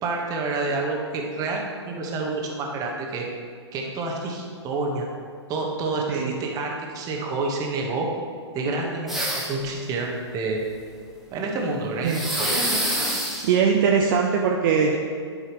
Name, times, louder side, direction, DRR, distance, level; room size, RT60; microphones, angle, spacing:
voice 1, 0.0-3.3 3.7-5.1 5.5-8.1 8.5-10.6 11.3-12.6, right 3 dB, 25° right, 0 dB, 1.3 m, -28 dB
sound 1, 9.1-9.7 12.1-13.4, right 1 dB, ahead, 1.4 m, -25 dB
voice 2, 13.4-15.0, right 6 dB, 45° right, 0 dB, 0.7 m, -21 dB
11.5 x 5.5 x 3.0 m, 2.1 s
hypercardioid pair, 125°, 15 cm